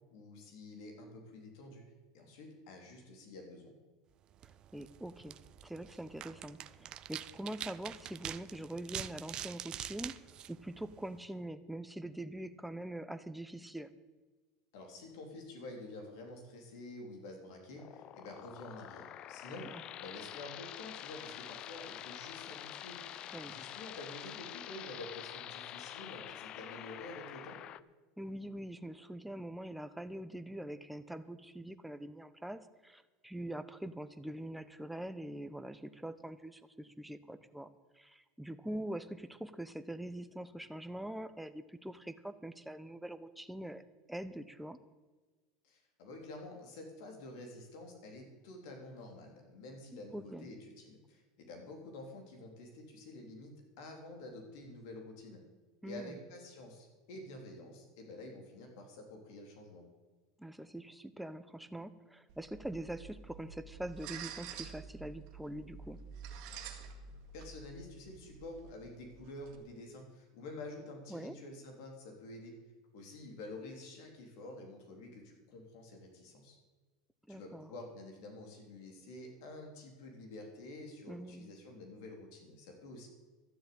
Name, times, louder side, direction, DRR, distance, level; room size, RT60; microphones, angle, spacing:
voice 1, 0.1-1.8 2.1-3.7 14.7-19.7 20.0-27.6 45.6-55.4 55.8-59.8 67.3-72.6 72.9-76.6 77.3-83.1, left 2 dB, 70° left, 2 dB, 3.5 m, -49 dB
sound 1, 4.3-11.3, right 11 dB, 40° right, 0.5 m, -46 dB
voice 2, 4.4-5.3 5.6-10.1 10.5-13.9 19.7-19.8 23.3-23.6 28.2-43.8 44.1-44.8 50.1-50.5 55.8-56.2 60.4-66.0 71.1-71.4 77.3-77.7 81.1-81.5, right 1 dB, 5° right, 11 dB, 0.8 m, -44 dB
sound 2, 17.8-27.8, left 12 dB, 45° left, 0.5 m, -47 dB
sound 3, 62.3-69.6, right 6 dB, 60° right, 2.0 m, -49 dB
12.5 x 7.7 x 8.5 m, 1.3 s
supercardioid pair, 115°, 2 cm